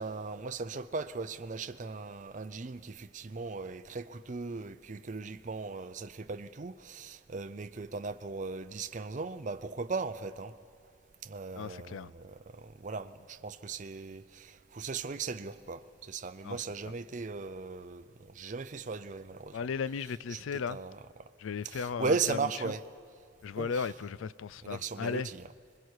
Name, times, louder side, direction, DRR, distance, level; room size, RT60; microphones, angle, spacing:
voice 1, 0.0-10.5 11.2-19.6 20.3-20.4 20.7-21.0 21.6-22.8 23.6-23.9 24.6-25.4, right 4 dB, 40° right, 0.5 m, -37 dB
voice 2, 11.5-12.1 16.4-16.6 19.5-20.8 21.4-22.7 23.4-25.3, left 6 dB, 85° left, 0.4 m, -36 dB
26.0 x 21.5 x 4.7 m
head